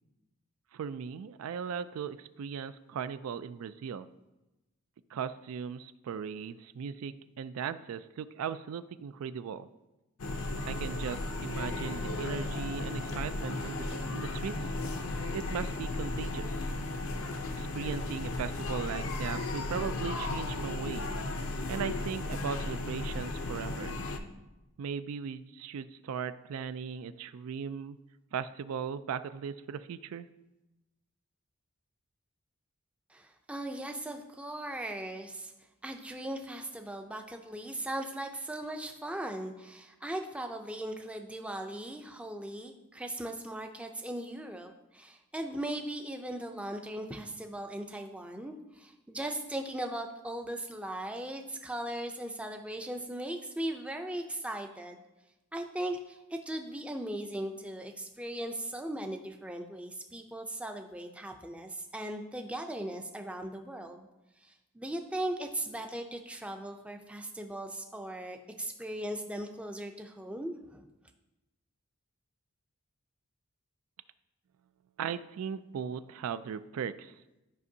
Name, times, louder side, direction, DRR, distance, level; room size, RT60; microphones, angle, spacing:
voice 1, 0.7-4.1 5.1-9.7 10.6-14.5 15.3-16.5 17.5-21.1 21.7-24.0 24.8-28.0 28.3-30.3 75.0-77.1, right 7 dB, 75° right, 13 dB, 0.3 m, -38 dB
sound 1, 10.2-24.2, left 2 dB, 65° left, 0.6 m, -35 dB
voice 2, 33.1-35.5 35.8-55.0 55.5-64.1 64.4-70.9, right 1 dB, 5° right, 4 dB, 0.4 m, -38 dB
12.0 x 5.2 x 2.7 m, 1.0 s
head